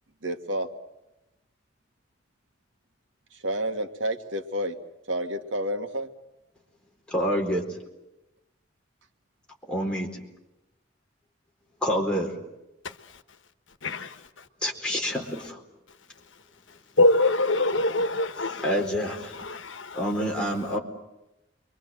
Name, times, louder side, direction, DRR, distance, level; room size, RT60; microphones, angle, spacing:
voice 1, 0.2-0.7 3.4-4.8 5.1-6.1, right 1 dB, 90° right, 1.8 m, -29 dB
voice 2, 7.1-7.6 9.7-10.1 11.8-12.3 14.6-15.6 18.6-19.4 19.9-20.8, equal, 5° left, 4.3 m, -27 dB
voice 3, 13.8-14.2 17.0-18.7 19.4-20.0, left 2 dB, 90° left, 1.3 m, -24 dB
29.0 x 23.5 x 7.7 m
head